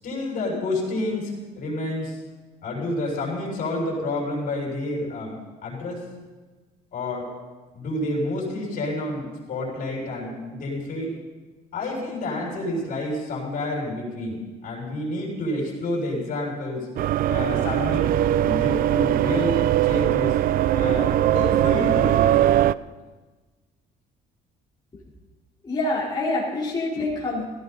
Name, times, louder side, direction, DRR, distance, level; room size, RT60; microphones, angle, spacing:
voice 1, 0.0-2.2 2.6-5.3 5.6-6.1 6.9-7.3 7.7-11.2 11.7-16.9 17.3-18.1 18.4-20.4 20.7-22.6, left 1 dB, 55° left, -3 dB, 6.5 m, -29 dB
sound 1, 17.0-22.7, right 13 dB, 60° right, 0.4 m, -21 dB
voice 2, 25.6-27.4, left 2 dB, 25° left, -8 dB, 4.4 m, -26 dB
17.0 x 15.0 x 4.2 m, 1.3 s
cardioid pair, 110°, 17 cm